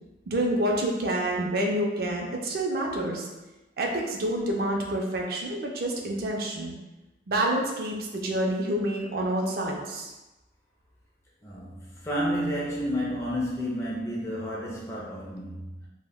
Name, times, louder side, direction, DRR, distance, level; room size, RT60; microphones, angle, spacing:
voice 1, 0.3-3.3 3.8-6.8 7.3-10.1, right 1 dB, 55° right, 0 dB, 0.4 m, -28 dB
voice 2, 11.4-15.9, equal, 15° left, -5 dB, 0.4 m, -31 dB
2.1 x 2.1 x 3.4 m, 1.1 s
head